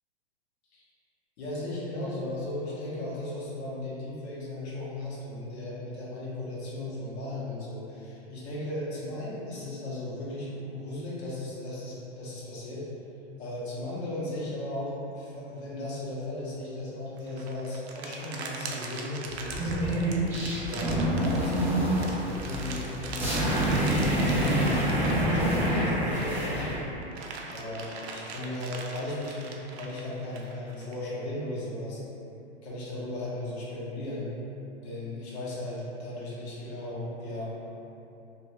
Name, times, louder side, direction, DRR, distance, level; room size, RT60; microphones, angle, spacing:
voice 1, 1.4-12.9 13.4-19.9 20.6-26.7 27.5-32.0 32.6-34.3 34.8-37.6, left 1 dB, 70° left, -7 dB, 1.0 m, -36 dB
sound 1, 17.2-26.4 26.8-31.0, right 4 dB, 70° right, 0.5 m, -41 dB
sound 2, 19.4-26.8, right 1 dB, 5° right, 0.3 m, -27 dB
2.6 x 2.3 x 2.9 m, 2.9 s
hypercardioid pair, 115°, 33 cm